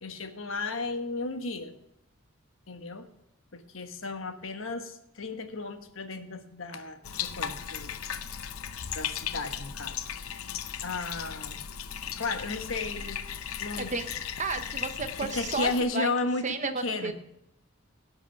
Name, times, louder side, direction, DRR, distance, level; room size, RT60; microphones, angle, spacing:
voice 1, 0.0-1.7 2.7-3.1 3.5-7.9 8.9-10.1 10.8-11.6 12.2-13.2 13.6-13.9 15.2-16.4 16.8-17.1, left 3 dB, 65° left, 7 dB, 1.2 m, -34 dB
Bathtub (filling or washing), 7.0-15.8, left 8 dB, 85° left, 0.7 m, -36 dB
voice 2, 13.8-14.1 14.4-16.1 16.4-17.1, right 4 dB, 35° right, 8 dB, 0.9 m, -32 dB
17.5 x 6.2 x 5.8 m, 0.79 s
head